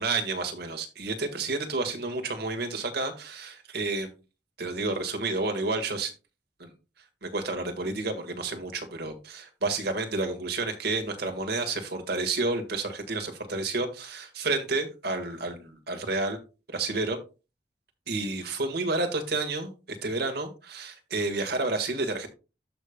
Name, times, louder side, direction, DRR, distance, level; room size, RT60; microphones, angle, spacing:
voice 1, 0.0-4.1 4.6-6.1 6.6-6.7 7.2-16.4 16.7-17.2 18.1-22.3, right 3 dB, 60° right, 5 dB, 1.6 m, -30 dB
14.0 x 5.2 x 2.2 m, 0.30 s
head